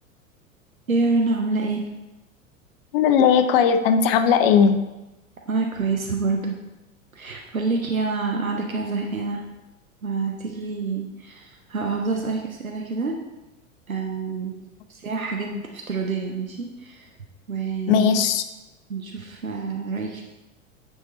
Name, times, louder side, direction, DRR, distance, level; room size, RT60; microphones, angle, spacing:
voice 1, 0.9-1.8 5.5-6.5 7.1-9.4 10.0-13.2 13.9-14.6 14.9-17.1 17.5-18.1 18.9-20.2, right 4 dB, 85° right, 1 dB, 0.8 m, -27 dB
voice 2, 2.9-4.8 15.5-15.6 17.9-18.4, left 7 dB, 45° left, 9 dB, 0.7 m, -18 dB
8.9 x 3.7 x 4.1 m, 1.0 s
figure-of-eight pair, 90°, 40 cm